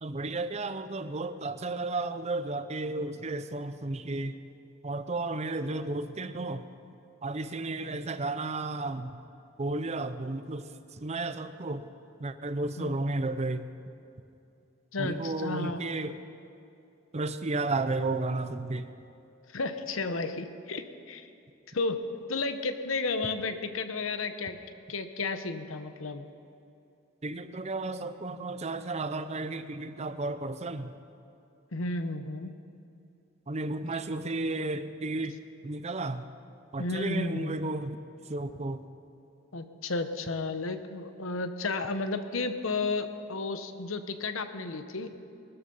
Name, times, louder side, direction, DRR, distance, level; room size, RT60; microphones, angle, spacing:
voice 1, 0.0-4.4 4.8-6.7 7.2-9.1 9.6-11.8 12.2-13.6 15.0-16.2 17.1-18.9 27.2-30.9 33.5-35.4 35.6-36.2 36.7-38.0 38.3-38.8, right 2 dB, 35° right, 11 dB, 0.7 m, -33 dB
voice 2, 14.9-15.8 19.5-21.3 21.7-22.0 22.3-24.6 24.9-26.3 31.7-32.5 36.8-37.5 39.5-45.1, left 3 dB, 85° left, 9 dB, 1.0 m, -32 dB
19.5 x 13.0 x 5.5 m, 2.7 s
head